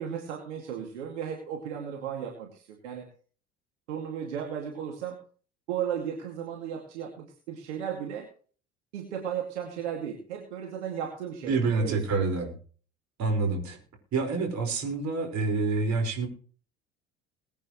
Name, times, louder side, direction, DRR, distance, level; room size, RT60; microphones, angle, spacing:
voice 1, 0.0-3.1 3.9-5.2 5.7-8.3 8.9-12.3, right 8 dB, 75° right, 1 dB, 2.4 m, -35 dB
voice 2, 11.5-12.5 13.2-13.8 14.1-16.3, right 3 dB, 50° right, 4 dB, 5.0 m, -27 dB
21.5 x 9.1 x 3.2 m, 0.41 s
figure-of-eight pair, 60°, 35 cm